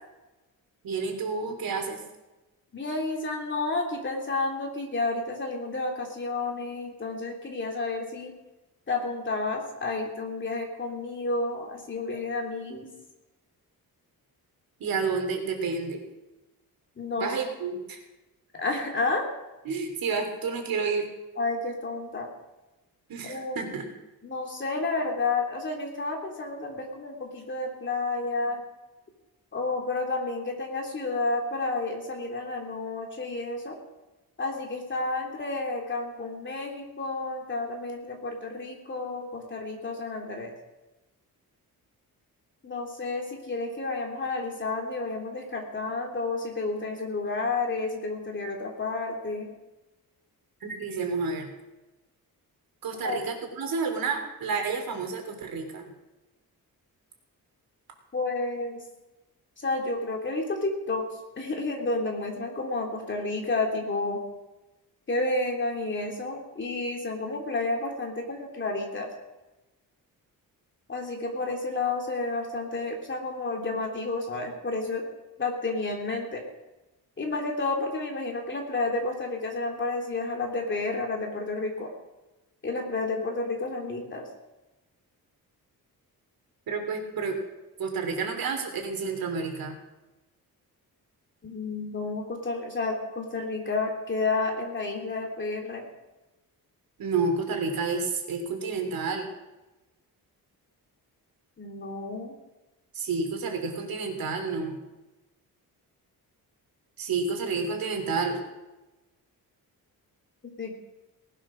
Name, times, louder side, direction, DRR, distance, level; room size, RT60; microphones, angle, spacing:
voice 1, 0.8-2.0 14.8-16.0 17.2-18.0 19.6-21.0 23.1-23.9 50.6-51.5 52.8-55.8 86.7-87.4 87.8-89.8 97.0-99.3 102.9-104.8 107.0-108.4, right 4 dB, 70° right, 4 dB, 3.3 m, -30 dB
voice 2, 2.7-8.3 8.9-12.9 17.0-17.3 18.6-19.3 21.4-22.3 23.2-23.7 24.2-28.6 29.5-33.7 34.4-40.5 42.6-49.5 53.0-53.2 58.1-58.8 59.6-61.0 61.4-64.2 65.1-69.1 70.9-75.0 75.4-76.4 77.2-81.9 82.6-84.3 91.4-95.9 101.6-102.4 110.6-110.7, left 3 dB, 30° left, 1 dB, 3.2 m, -31 dB
19.0 x 10.0 x 6.3 m, 1.0 s
wide cardioid pair, 155°, 36 cm